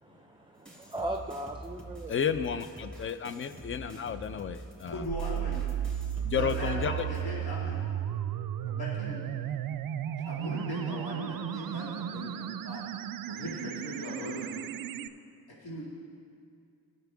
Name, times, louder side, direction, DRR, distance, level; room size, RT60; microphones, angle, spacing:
voice 1, 0.0-2.2, right 1 dB, 15° right, 3 dB, 0.6 m, -38 dB
sound 1, 0.7-7.2, right 1 dB, ahead, 2.8 m, -46 dB
voice 2, 2.1-5.0 6.2-6.9, left 7 dB, 35° left, 12 dB, 0.5 m, -32 dB
voice 3, 4.9-5.7 6.3-7.8 8.6-9.3 10.2-12.8 13.3-14.5 15.5-15.9, left 1 dB, 75° left, -7 dB, 2.6 m, -39 dB
sound 2, 5.1-15.1, right 11 dB, 65° right, 0.5 m, -34 dB
17.0 x 6.7 x 3.6 m, 2.3 s
cardioid pair, 75°, 37 cm